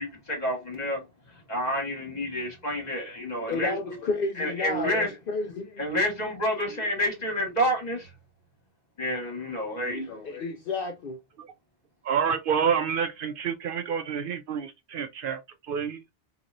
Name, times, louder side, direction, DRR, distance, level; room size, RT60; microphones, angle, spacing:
voice 1, 0.0-4.0 4.4-5.1 5.8-8.1 9.0-10.1, equal, 40° left, 1.8 m, -29 dB
voice 2, 3.5-5.8 9.8-11.2, left 4 dB, 60° left, 0.7 m, -32 dB
voice 3, 12.0-15.4 15.7-16.0, right 7 dB, 60° right, 0.6 m, -28 dB
2.9 x 2.9 x 2.5 m
omnidirectional pair, 1.1 m